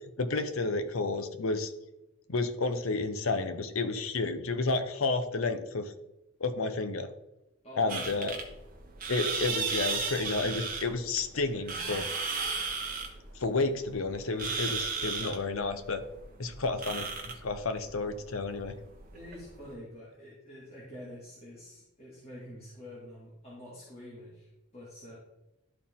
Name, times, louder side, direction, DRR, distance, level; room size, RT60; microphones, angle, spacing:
voice 1, 0.2-1.7 2.3-5.9 6.4-7.1 7.8-8.3 9.1-12.1 12.4-12.5 13.3-16.0 16.4-17.1 17.4-18.8, left 3 dB, 75° left, 9 dB, 0.8 m, -31 dB
voice 2, 7.6-8.3 19.1-25.2, left 1 dB, 30° left, -8 dB, 2.1 m, -47 dB
sound 1, 7.9-19.7, right 5 dB, 40° right, 1.1 m, -35 dB
12.0 x 4.4 x 3.7 m, 0.92 s
head